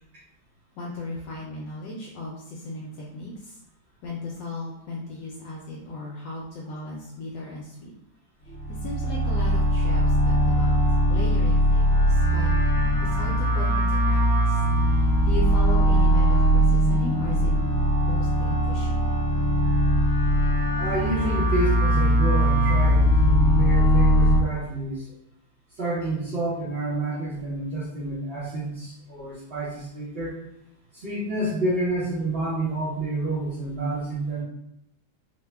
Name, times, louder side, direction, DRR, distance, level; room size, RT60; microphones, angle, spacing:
voice 1, 0.8-3.6 4.0-7.9 8.4-10.8 11.1-12.5 13.0-14.6 14.9-17.5 18.0-19.1, left 2 dB, 75° left, -3 dB, 1.1 m, -36 dB
sound 1, 8.5-24.4, equal, 55° left, 1.2 m, -20 dB
voice 2, 20.8-25.1 25.8-30.4 30.9-34.4, right 2 dB, 60° right, -10 dB, 0.6 m, -29 dB
3.5 x 2.1 x 3.3 m, 0.81 s
omnidirectional pair, 2.2 m